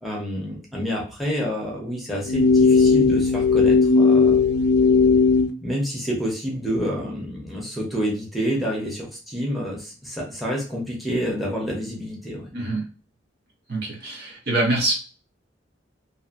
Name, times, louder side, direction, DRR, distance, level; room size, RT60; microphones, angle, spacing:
voice 1, 0.0-4.4 5.6-12.5, equal, ahead, -3 dB, 0.8 m, -28 dB
sound 1, 2.3-5.5, left 4 dB, 60° left, 0.5 m, -17 dB
voice 2, 12.5-12.8 13.7-14.9, right 2 dB, 60° right, -1 dB, 1.0 m, -24 dB
2.8 x 2.8 x 2.5 m, 0.37 s
head